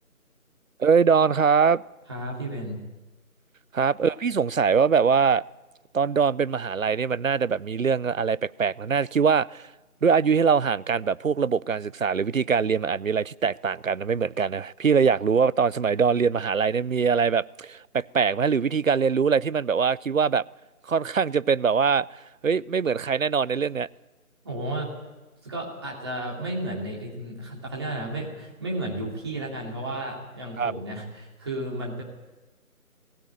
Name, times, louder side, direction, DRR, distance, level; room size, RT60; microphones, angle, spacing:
voice 1, 0.8-1.8 3.7-5.4 5.9-9.7 10.0-20.4 20.9-23.9 30.6-30.7, right 6 dB, 65° right, 22 dB, 0.6 m, -23 dB
voice 2, 2.1-2.8 24.4-24.9 25.4-32.0, right 1 dB, 20° right, -3 dB, 3.0 m, -33 dB
19.0 x 16.0 x 9.0 m, 1.1 s
figure-of-eight pair, 165°, 44 cm